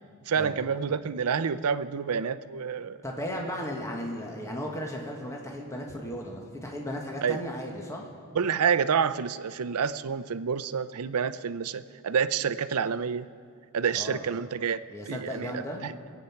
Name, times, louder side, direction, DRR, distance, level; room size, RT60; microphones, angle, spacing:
voice 1, 0.3-3.0 7.2-7.4 8.3-13.3 13.7-14.8 15.1-15.5 15.8-15.9, right 6 dB, 80° right, 12 dB, 0.5 m, -28 dB
voice 2, 3.0-8.1 13.9-14.3 14.9-15.8, equal, 15° left, 0 dB, 1.4 m, -35 dB
23.5 x 9.2 x 5.8 m, 2.2 s
head